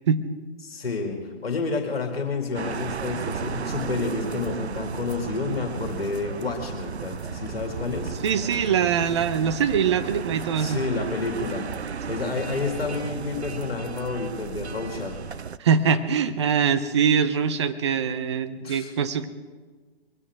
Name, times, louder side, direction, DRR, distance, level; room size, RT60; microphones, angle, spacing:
voice 1, 0.6-8.2 10.6-11.7 12.1-15.2 18.6-18.9, left 4 dB, 65° left, 3 dB, 2.4 m, -30 dB
sound 1, 2.5-15.6, right 6 dB, 80° right, 0.6 m, -34 dB
voice 2, 8.2-10.8 15.6-19.3, right 7 dB, 25° right, 11 dB, 0.7 m, -23 dB
22.5 x 15.0 x 3.6 m, 1.4 s
figure-of-eight pair, 140°, 32 cm